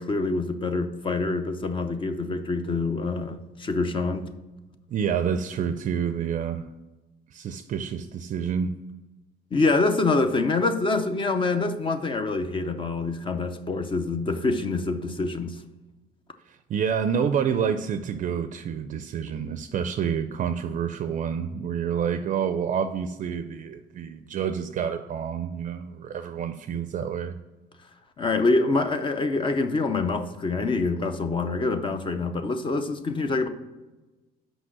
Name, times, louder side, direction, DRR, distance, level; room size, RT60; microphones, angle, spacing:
voice 1, 0.0-4.3 9.5-15.6 28.2-33.5, left 3 dB, 30° left, 8 dB, 0.6 m, -25 dB
voice 2, 4.9-6.7 7.3-8.7 16.7-27.4, right 7 dB, 50° right, 10 dB, 0.4 m, -28 dB
6.2 x 5.1 x 6.0 m, 1.1 s
cardioid pair, 110°, 17 cm